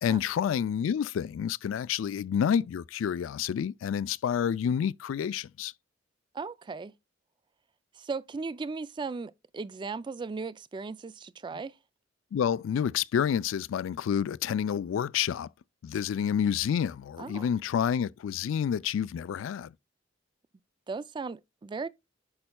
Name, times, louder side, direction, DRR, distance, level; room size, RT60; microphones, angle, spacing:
voice 1, 0.0-5.7 12.3-15.5 15.8-19.7, left 8 dB, 85° left, 0.3 m, -29 dB
voice 2, 6.3-6.9 8.0-11.8 17.2-17.5 20.9-21.9, right 4 dB, 25° right, 0.3 m, -37 dB
8.6 x 5.4 x 2.2 m
head